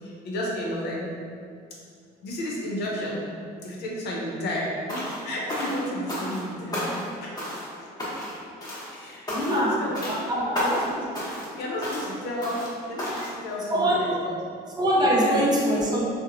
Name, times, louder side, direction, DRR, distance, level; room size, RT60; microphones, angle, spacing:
voice 1, 0.0-1.1 2.2-3.3 3.6-6.9 7.2-7.9 8.9-10.1 10.6-11.1 11.5-14.3 15.0-15.5, left 1 dB, 75° left, -3 dB, 0.6 m, -32 dB
sound 1, 4.9-5.2 5.5-6.4 6.7-7.1 7.4-7.7 8.0-8.4 8.6-8.9 9.3-9.7 9.9-10.2 10.5-10.9 11.1-11.5 11.8-12.1 12.4-12.7 13.0-13.3, equal, 20° left, 0.8 m, -31 dB
voice 2, 9.5-10.6 13.7-14.2 14.8-16.1, equal, 25° right, -4 dB, 0.5 m, -23 dB
2.8 x 2.0 x 2.5 m, 2.2 s
cardioid pair, 110°, 17 cm